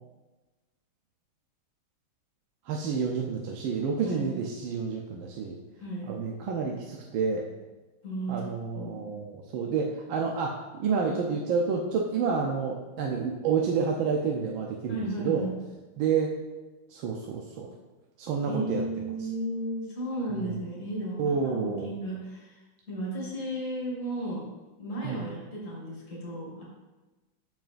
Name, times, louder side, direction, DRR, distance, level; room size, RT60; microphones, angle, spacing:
voice 1, 2.6-5.6 6.1-7.4 8.3-15.5 16.0-16.3 16.9-17.7 18.2-18.8 20.3-20.6 21.2-21.9 25.0-25.2, right 5 dB, 70° right, 0 dB, 1.4 m, -29 dB
voice 2, 5.8-6.1 8.0-8.4 8.7-9.1 14.9-15.6 18.4-22.6 22.9-24.4 24.8-26.6, right 1 dB, 35° left, -5 dB, 2.3 m, -34 dB
13.5 x 4.8 x 2.5 m, 1.1 s
omnidirectional pair, 2.4 m